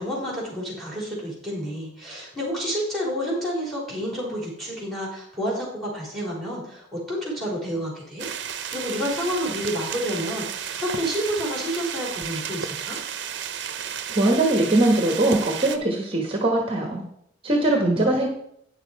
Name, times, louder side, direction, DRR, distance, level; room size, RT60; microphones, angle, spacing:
voice 1, 0.0-13.0, equal, ahead, -3 dB, 3.6 m, -29 dB
sound 1, 8.2-15.8, right 8 dB, 60° right, 0.7 m, -32 dB
voice 2, 14.1-17.0 17.4-18.3, right 2 dB, 30° right, 2 dB, 1.1 m, -21 dB
9.3 x 6.6 x 4.6 m, 0.72 s
head